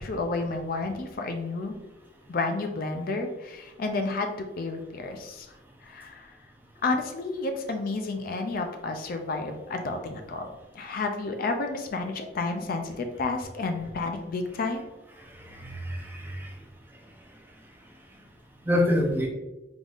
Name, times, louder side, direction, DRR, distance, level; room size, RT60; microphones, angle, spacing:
voice 1, 0.0-1.8 2.3-5.5 5.8-6.4 6.8-14.9, left 3 dB, 50° left, 5 dB, 0.4 m, -31 dB
voice 2, 15.2-16.5 18.6-19.3, left 1 dB, 10° right, 0 dB, 0.5 m, -27 dB
3.9 x 3.5 x 2.4 m, 1.1 s
head